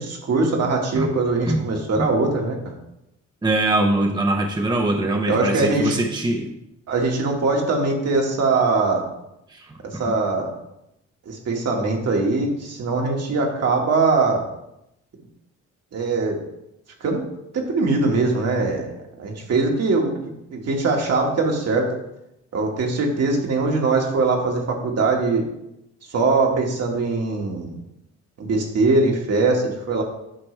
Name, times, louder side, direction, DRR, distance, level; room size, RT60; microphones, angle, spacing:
voice 1, 0.0-2.7 5.3-6.0 6.9-9.1 9.8-10.5 11.2-14.4 15.9-16.4 17.0-17.2 17.5-18.9 19.2-20.1 20.5-21.9 22.5-25.4 26.1-27.7 28.4-30.0, right 3 dB, 55° right, 1 dB, 1.8 m, -21 dB
voice 2, 3.4-6.6 9.5-10.0, right 2 dB, 15° right, 2 dB, 0.8 m, -22 dB
9.1 x 5.9 x 3.3 m, 0.85 s
cardioid pair, 90°, 30 cm